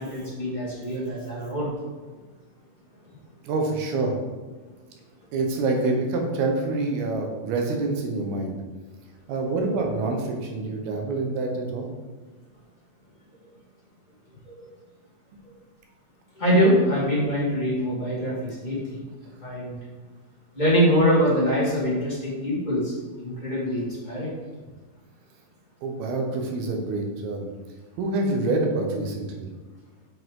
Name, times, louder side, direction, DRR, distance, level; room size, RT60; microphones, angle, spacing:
voice 1, 0.0-1.7 14.4-14.7 16.3-19.0 19.4-19.8 20.5-22.9 23.2-24.3, equal, 30° left, -8 dB, 0.8 m, -24 dB
voice 2, 3.4-4.1 5.3-8.5 9.3-11.9 25.8-27.5 28.0-29.5, right 3 dB, 80° right, 2 dB, 2.9 m, -26 dB
7.6 x 5.5 x 3.7 m, 1.3 s
omnidirectional pair, 4.4 m